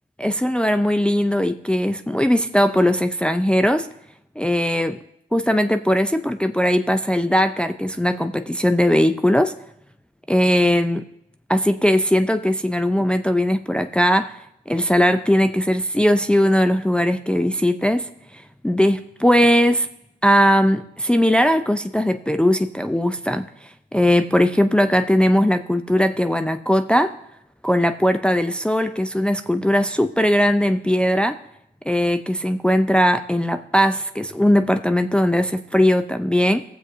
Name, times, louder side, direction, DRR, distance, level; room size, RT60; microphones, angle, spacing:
voice 1, 0.2-3.9 4.4-5.0 5.3-9.5 10.3-11.0 11.5-19.9 20.2-27.1 27.6-31.4 31.9-36.6, equal, 5° left, 7 dB, 0.5 m, -19 dB
16.0 x 7.6 x 2.7 m, 0.78 s
supercardioid pair, 50°, 19 cm